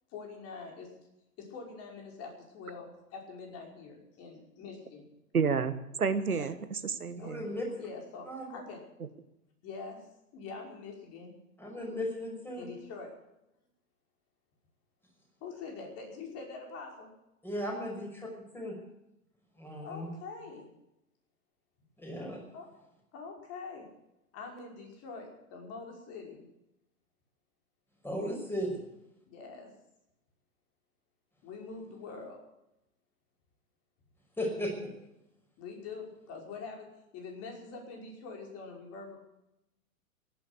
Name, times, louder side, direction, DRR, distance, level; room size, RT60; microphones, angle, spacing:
voice 1, 0.1-0.9 1.4-5.1 6.3-6.5 7.2-7.3 7.8-8.8 9.6-10.0 10.3-11.4 12.5-13.1 15.4-17.1 19.8-20.7 22.5-22.7 23.1-23.9 24.3-26.5 29.3-29.7 31.4-32.4 35.6-36.9 37.1-39.2, left 4 dB, 35° left, 1 dB, 5.5 m, -44 dB
voice 2, 5.3-7.5, right 5 dB, 80° right, 12 dB, 1.4 m, -30 dB
voice 3, 7.1-7.7 8.3-8.6 11.6-12.6 17.4-18.1 18.5-18.7 19.6-20.1 22.0-22.4 28.0-28.8 34.4-34.7, equal, 5° left, 1 dB, 5.6 m, -36 dB
16.5 x 10.5 x 8.3 m, 0.88 s
figure-of-eight pair, 105°, 43 cm